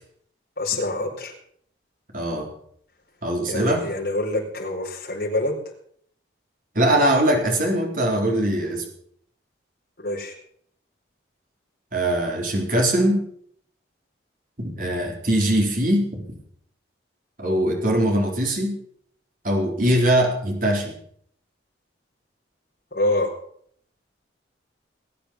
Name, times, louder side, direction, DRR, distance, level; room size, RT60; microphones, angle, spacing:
voice 1, 0.6-1.3 3.5-5.6 10.0-10.3 22.9-23.3, left 2 dB, 50° left, -2 dB, 4.5 m, -26 dB
voice 2, 2.1-2.5 3.2-3.8 6.7-8.8 11.9-13.2 14.6-16.3 17.4-18.8 19.4-20.9, right 1 dB, 45° right, 1 dB, 4.2 m, -21 dB
20.0 x 8.7 x 7.2 m, 0.63 s
head